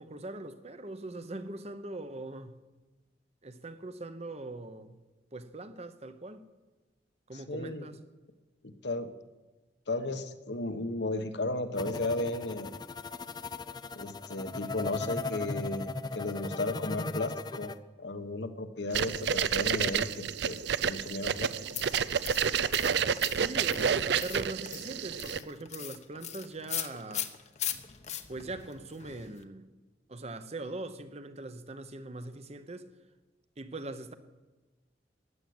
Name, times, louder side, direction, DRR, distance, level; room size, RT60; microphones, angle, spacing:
voice 1, 0.0-2.6 3.4-5.0 5.3-6.5 7.3-8.0 23.4-27.3 28.3-29.7 30.1-32.9 33.6-34.1, right 2 dB, 35° right, 1.0 m, -41 dB
voice 2, 7.3-7.9 8.6-9.1 9.9-12.8 14.0-17.7 18.0-21.6, left 2 dB, 65° left, 1.2 m, -34 dB
sound 1, 11.8-17.7, left 3 dB, 25° left, 0.5 m, -37 dB
sound 2, 18.9-25.4, right 7 dB, 65° right, 0.5 m, -29 dB
sound 3, 21.7-29.4, left 10 dB, 40° left, 0.9 m, -40 dB
16.0 x 10.5 x 7.9 m
head